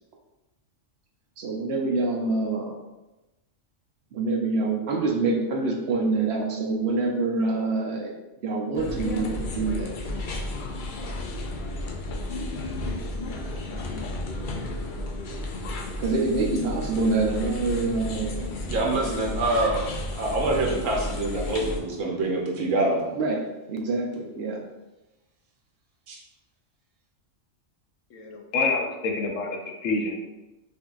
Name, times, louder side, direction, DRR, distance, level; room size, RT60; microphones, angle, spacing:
voice 1, 1.4-2.7 4.1-8.1 8.4-9.9 16.0-18.5 23.1-24.6, right 3 dB, 65° right, 1 dB, 0.8 m, -26 dB
sound 1, 8.7-21.8, left 1 dB, 60° left, 0.5 m, -32 dB
voice 2, 18.7-19.8 20.1-23.0 26.1-26.2, right 2 dB, 80° right, -1 dB, 1.2 m, -25 dB
voice 3, 28.1-30.2, left 3 dB, 80° left, 3 dB, 1.0 m, -27 dB
5.3 x 2.7 x 2.4 m, 1.0 s
omnidirectional pair, 1.3 m